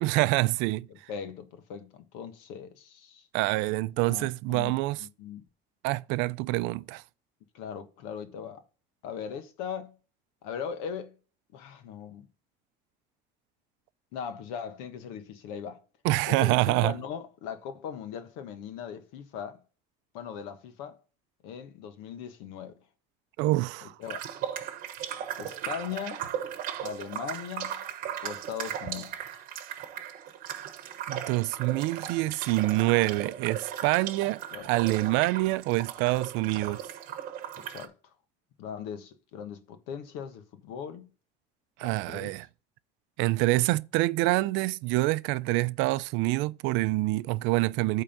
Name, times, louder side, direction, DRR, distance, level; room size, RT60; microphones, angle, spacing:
voice 1, 0.0-0.9 3.3-5.1 5.8-7.0 16.0-16.9 23.4-23.9 31.1-36.8 41.8-42.5 43.2-48.0, right 20 dB, 65° right, 0.5 m, -26 dB
voice 2, 0.9-3.3 4.1-4.7 5.0-5.4 7.5-8.6 9.0-9.9 10.4-11.1 11.5-12.3 14.1-15.8 16.3-19.6 20.1-21.0 21.4-22.7 23.8-24.2 25.4-26.2 26.8-27.8 28.2-29.4 34.5-34.7 37.6-38.1 38.6-41.1 41.8-42.3, left 7 dB, 85° left, 1.4 m, -39 dB
sound 1, 24.0-37.9, right 10 dB, 45° right, 1.1 m, -37 dB
8.8 x 3.7 x 5.8 m
cardioid pair, 160°, 20 cm